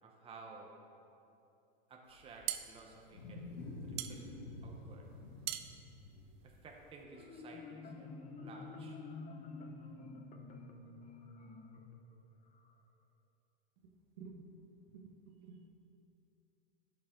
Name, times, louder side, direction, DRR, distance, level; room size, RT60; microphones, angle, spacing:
voice 1, 0.0-0.8 1.9-3.5 3.8-4.3 4.6-5.1 6.4-8.1 8.4-9.0, right 3 dB, 20° right, 0 dB, 0.9 m, -54 dB
Wild animals, 2.1-7.2, left 2 dB, 90° left, 1.6 m, -49 dB
sound 1, 2.1-7.0, right 13 dB, 50° right, 0.5 m, -44 dB
Marimba xylophone, 7.2-12.7, left 3 dB, 25° left, 0.7 m, -49 dB
voice 2, 14.2-14.5 14.9-15.7, right 4 dB, 70° right, 3 dB, 1.2 m, -52 dB
11.5 x 5.6 x 3.7 m, 2.7 s
supercardioid pair, 130°, 29 cm